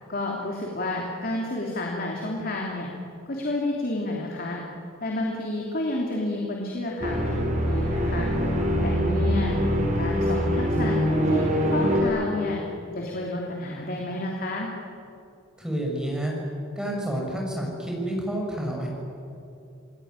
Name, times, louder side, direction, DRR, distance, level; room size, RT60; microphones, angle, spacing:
voice 1, 0.1-2.9 3.3-4.6 5.0-8.3 8.8-9.6 9.9-11.0 11.2-12.6 12.9-14.7, left 2 dB, 45° left, -1 dB, 3.2 m, -30 dB
sound 1, 7.0-12.0, equal, 35° right, 4.1 m, -24 dB
voice 2, 15.6-16.3 16.8-18.9, right 1 dB, 5° right, -1 dB, 6.6 m, -29 dB
28.5 x 20.0 x 9.8 m, 2.7 s
head